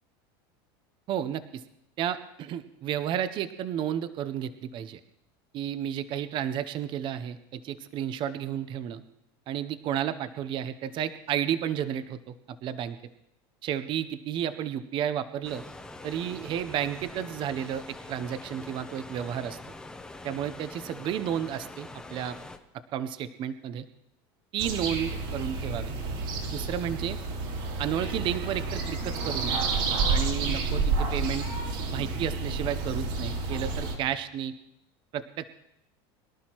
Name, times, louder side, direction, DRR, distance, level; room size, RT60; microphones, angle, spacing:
voice 1, 1.1-1.6 2.0-5.0 5.5-9.0 9.5-13.0 13.6-15.6 16.0-19.6 20.2-22.4 22.9-23.8 24.5-25.9 26.5-27.2 27.8-29.6 30.1-31.5 31.9-34.5 35.1-35.5, right 10 dB, 40° right, 13 dB, 0.7 m, -32 dB
sound 1, 15.4-22.6, left 2 dB, 5° left, 0.7 m, -44 dB
sound 2, 24.6-34.0, right 3 dB, 65° right, 2.9 m, -30 dB
23.0 x 11.5 x 3.0 m, 0.79 s
supercardioid pair, 135°, 13 cm